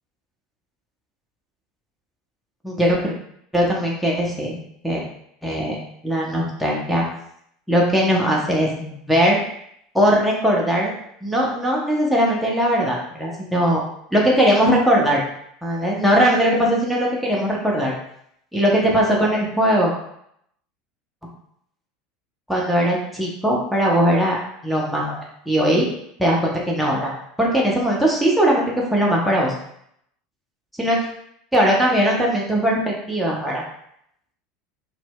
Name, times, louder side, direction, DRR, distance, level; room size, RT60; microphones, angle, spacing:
voice 1, 2.6-3.1 3.5-4.6 4.8-5.0 5.4-7.0 7.7-9.4 9.9-10.9 11.2-13.8 14.1-15.2 15.6-17.9 18.5-19.9 22.5-24.4 24.6-25.1 25.5-25.9 26.2-29.5 30.8-31.1 31.5-33.6, equal, ahead, -4 dB, 0.6 m, -20 dB
2.1 x 2.0 x 3.5 m, 0.72 s
figure-of-eight pair, 75°, 0 cm